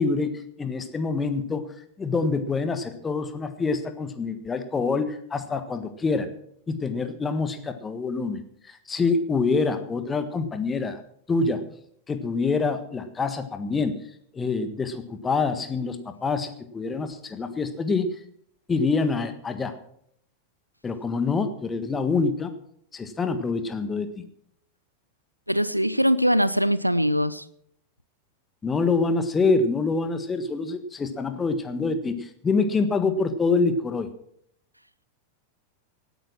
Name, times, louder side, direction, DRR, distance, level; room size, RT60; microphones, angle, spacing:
voice 1, 0.0-1.6 2.0-6.3 6.7-8.4 8.7-11.0 11.3-11.6 12.1-13.9 14.3-18.1 18.7-19.8 20.8-22.5 22.9-24.2 28.6-34.1, left 4 dB, 15° left, 9 dB, 1.5 m, -26 dB
voice 2, 25.5-27.4, equal, 90° right, 17 dB, 0.6 m, -22 dB
17.5 x 9.3 x 6.1 m, 0.68 s
figure-of-eight pair, 90°, 0 cm